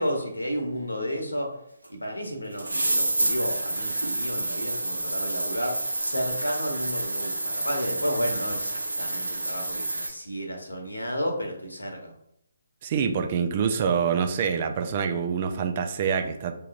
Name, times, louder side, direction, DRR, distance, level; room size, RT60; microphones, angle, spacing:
voice 1, 0.0-1.6 1.9-12.1, equal, 80° left, 3 dB, 1.1 m, -32 dB
sound 1, 1.8-1.9 2.6-10.1, right 2 dB, 80° right, 0.7 m, -29 dB
voice 2, 12.8-16.5, right 6 dB, 35° right, 6 dB, 0.5 m, -26 dB
6.8 x 2.8 x 2.5 m, 0.77 s
figure-of-eight pair, 140°, 0 cm